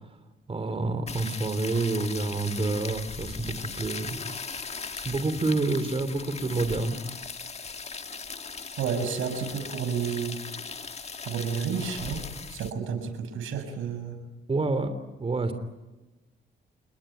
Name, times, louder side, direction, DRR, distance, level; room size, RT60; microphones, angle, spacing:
voice 1, 0.5-4.2 4.9-7.0 14.5-14.9 15.2-15.5, right 3 dB, 30° right, 9 dB, 3.3 m, -28 dB
sound 1, 1.1-12.7, left 5 dB, 30° left, 1.6 m, -38 dB
voice 2, 8.8-10.4 11.2-14.2, right 6 dB, 80° right, 8 dB, 6.2 m, -31 dB
29.5 x 21.0 x 9.3 m, 1.1 s
cardioid pair, 90°, 20 cm